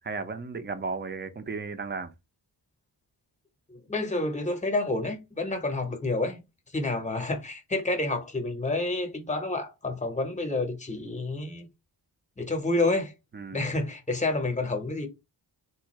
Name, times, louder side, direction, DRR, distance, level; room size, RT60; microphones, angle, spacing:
voice 1, 0.0-2.1 13.3-13.6, right 4 dB, 25° right, 0.5 m, -34 dB
voice 2, 3.7-6.4 6.7-11.7 12.4-13.1 13.5-15.1, left 2 dB, 15° left, 0.8 m, -29 dB
3.5 x 2.4 x 2.9 m
wide cardioid pair, 140°, 43 cm